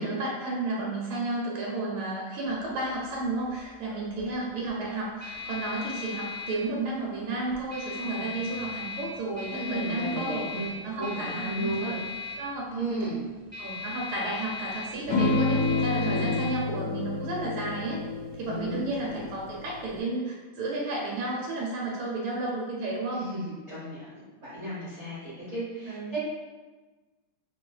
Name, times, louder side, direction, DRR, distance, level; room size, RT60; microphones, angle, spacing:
voice 1, 0.0-10.5 10.8-12.0 12.4-13.1 13.6-18.0 18.4-23.3 25.9-26.2, right 2 dB, 85° right, -3 dB, 1.5 m, -32 dB
sound 1, 2.5-19.3, left 5 dB, 10° left, 0.7 m, -40 dB
voice 2, 9.5-11.9 12.7-13.2 16.0-16.3 18.4-18.8 23.1-26.2, right 2 dB, 50° right, -10 dB, 0.8 m, -34 dB
sound 2, 15.1-20.0, left 3 dB, 55° left, 1.1 m, -29 dB
3.0 x 2.7 x 2.2 m, 1.2 s
omnidirectional pair, 2.3 m